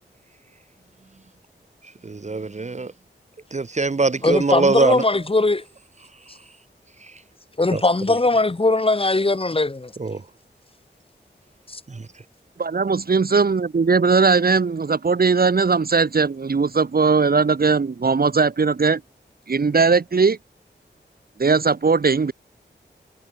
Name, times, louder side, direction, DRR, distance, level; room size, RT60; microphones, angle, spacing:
voice 1, 2.0-2.9 3.5-5.0 7.0-7.2 7.7-7.8 10.0-10.2 11.9-12.1, right 3 dB, 40° right, 1.2 m, -22 dB
voice 2, 4.2-5.6 7.6-9.9 11.7-11.8, left 2 dB, 30° left, 2.0 m, -20 dB
voice 3, 12.6-19.0 19.5-20.4 21.4-22.3, right 4 dB, 55° right, 1.4 m, -19 dB
wide cardioid pair, 90°, 19 cm